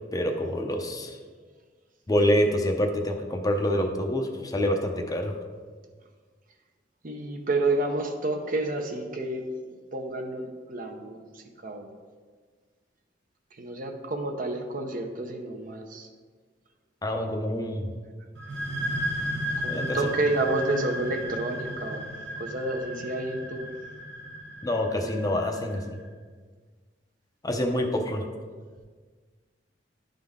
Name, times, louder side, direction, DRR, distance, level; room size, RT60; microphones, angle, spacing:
voice 1, 0.1-1.2 2.1-5.3 17.0-17.9 19.7-20.0 24.6-26.0 27.4-28.2, equal, 20° left, 3 dB, 0.6 m, -26 dB
voice 2, 7.0-9.5 9.9-11.9 13.6-16.1 19.6-22.1 22.4-23.7 24.9-25.2, right 2 dB, 50° right, 3 dB, 0.7 m, -30 dB
sound 1, 18.3-25.8, equal, 80° right, 0.9 m, -34 dB
11.0 x 3.9 x 3.6 m, 1.5 s
head